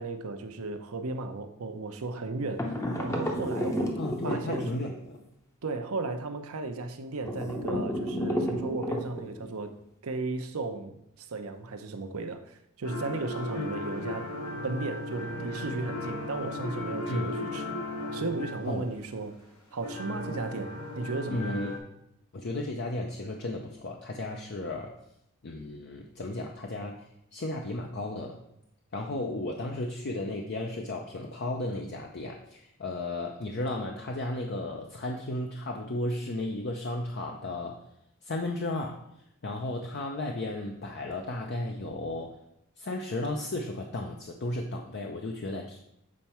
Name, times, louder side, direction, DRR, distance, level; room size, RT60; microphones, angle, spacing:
voice 1, 0.0-3.9 4.2-4.7 5.6-9.7 10.0-14.3 14.6-17.8 18.1-19.4 19.7-21.6, right 3 dB, 70° right, 7 dB, 0.7 m, -35 dB
sound 1, 2.6-5.2 7.2-9.5, equal, 15° left, 0.7 m, -32 dB
voice 2, 4.0-5.2 13.5-13.7 17.1-17.3 18.6-18.9 21.3-21.7 22.3-24.9 25.4-27.0 27.3-28.4 28.9-37.8 38.2-39.0 39.4-42.4 42.8-45.8, left 2 dB, 50° left, 2 dB, 0.6 m, -34 dB
sound 2, 12.8-19.0 19.8-21.8, left 1 dB, 75° left, 1.6 m, -36 dB
7.4 x 4.5 x 4.3 m, 0.78 s
head